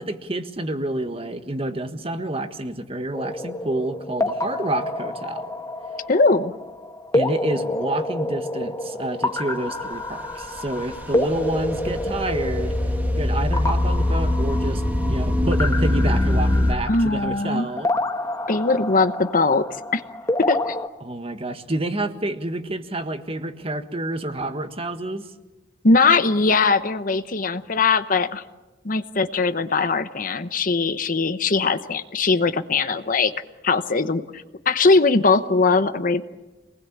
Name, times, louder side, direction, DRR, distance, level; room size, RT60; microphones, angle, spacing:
voice 1, 0.0-5.5 7.1-12.8 13.2-17.9 21.0-25.3, right 1 dB, 30° right, 8 dB, 1.5 m, -28 dB
sound 1, 3.1-20.9, left 1 dB, 20° left, 1.4 m, -29 dB
voice 2, 6.1-6.5 16.9-17.7 18.5-19.7 19.9-20.0 20.4-20.8 25.8-28.4 28.8-33.3 33.6-36.2, left 3 dB, 50° left, 11 dB, 1.0 m, -20 dB
sound 2, 9.9-16.7, left 1 dB, 10° right, 1.8 m, -23 dB
26.5 x 20.0 x 8.6 m, 1.1 s
head